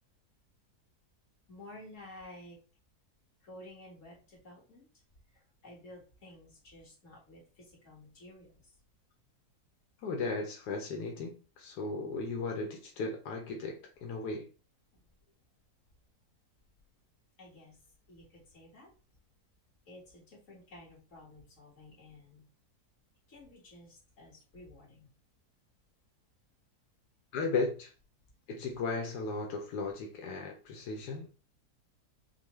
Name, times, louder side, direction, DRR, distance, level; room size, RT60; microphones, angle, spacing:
voice 1, 1.5-2.6 3.4-4.9 5.3-8.7 14.9-15.0 17.4-17.8 18.1-18.9 19.9-22.5 23.3-25.1, left 1 dB, 50° left, 1.9 m, -53 dB
voice 2, 10.0-14.5 27.3-27.9 28.5-31.3, left 3 dB, 85° left, 1.2 m, -36 dB
5.5 x 2.2 x 3.0 m
omnidirectional pair, 1.7 m